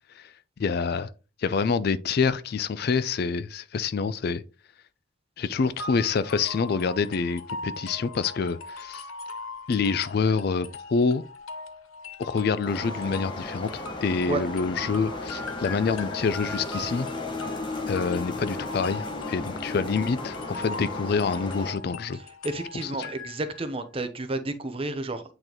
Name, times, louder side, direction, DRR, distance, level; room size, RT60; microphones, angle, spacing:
voice 1, 0.2-1.1 1.4-4.4 5.4-9.0 9.7-11.2 12.2-17.1 17.9-22.2 22.8-23.1, left 5 dB, 50° left, 0.3 m, -27 dB
sound 1, 5.8-23.7, left 3 dB, 85° left, 0.8 m, -40 dB
sound 2, 12.6-21.7, left 2 dB, 25° left, 0.8 m, -35 dB
voice 2, 22.1-25.2, right 2 dB, 25° right, 0.7 m, -31 dB
8.8 x 3.9 x 3.0 m
head